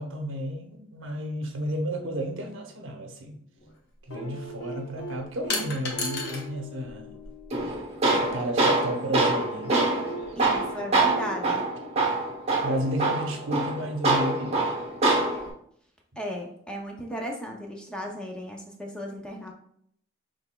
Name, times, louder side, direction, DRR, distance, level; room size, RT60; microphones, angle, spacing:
voice 1, 0.0-3.4 4.1-7.2 8.2-9.8 12.6-14.7, equal, 65° right, 4 dB, 0.8 m, -32 dB
sound 1, 3.6-3.7 5.5-6.5 6.8-7.7, left 3 dB, 50° left, 1.0 m, -33 dB
sound 2, 4.1-8.2 9.1-12.7 14.2-14.3, right 2 dB, 75° left, 1.0 m, -40 dB
Tools, 7.5-15.5, right 2 dB, 30° right, 1.0 m, -25 dB
voice 2, 10.4-11.6 16.2-19.5, equal, 5° left, 0 dB, 0.5 m, -35 dB
6.2 x 3.3 x 2.2 m, 0.68 s
head